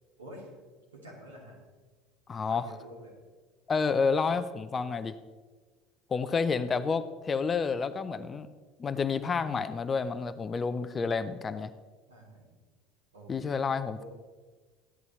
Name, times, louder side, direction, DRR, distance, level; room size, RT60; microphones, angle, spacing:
voice 1, 0.2-0.5 0.9-1.6 2.5-3.2 12.1-12.5 13.1-13.3 14.0-14.1, equal, 75° right, -2 dB, 2.9 m, -48 dB
voice 2, 2.3-2.7 3.7-5.1 6.1-8.5 8.8-11.7 13.3-14.0, left 5 dB, 25° left, 13 dB, 0.6 m, -29 dB
14.5 x 11.0 x 3.2 m, 1.4 s
figure-of-eight pair, 65°, 0 cm